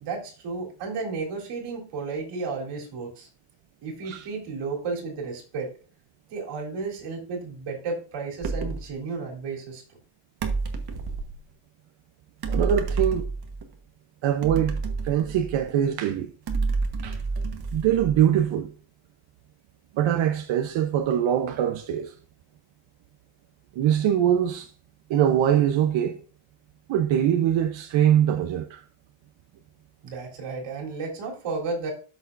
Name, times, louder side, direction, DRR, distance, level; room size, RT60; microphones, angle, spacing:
voice 1, 0.0-3.3 3.8-5.7 6.3-9.8 30.0-31.9, right 4 dB, 85° right, 3.6 m, -33 dB
sound 1, 8.4-8.9 10.4-11.4 12.4-13.7 14.4-15.8 16.5-18.4, right 4 dB, 50° right, 1.3 m, -29 dB
voice 2, 12.5-13.3 14.2-14.8 15.0-16.3 17.0-17.2 17.7-18.7 19.9-22.1 23.8-24.7 25.1-26.2 26.9-28.8, right 10 dB, 65° right, 0.9 m, -23 dB
13.0 x 6.3 x 2.6 m
cardioid pair, 165°, 50 cm